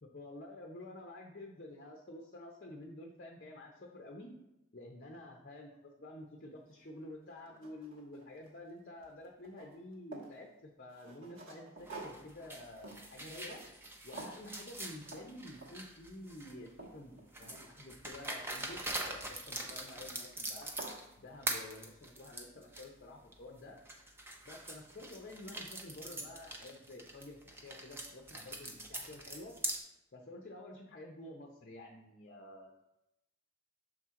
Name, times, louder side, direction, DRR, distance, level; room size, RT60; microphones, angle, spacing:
voice 1, 0.0-4.3 4.7-13.6 14.0-20.7 21.2-23.8 24.4-29.5 30.1-32.8, left 1 dB, 40° left, 1 dB, 0.6 m, -50 dB
sound 1, 6.7-6.8 7.3-8.7 9.0-10.4 10.9-13.9 14.1-14.5 15.1-15.3 15.6-15.9 16.4-17.9 19.4-19.8 20.3-20.4 20.6-21.0, right 3 dB, 55° right, 1.1 m, -50 dB
sound 2, 11.9-16.7 17.3-21.1 21.4-22.9 23.3-23.4 23.9-29.8, right 1 dB, 10° right, 0.5 m, -43 dB
6.5 x 4.4 x 3.7 m, 0.90 s
head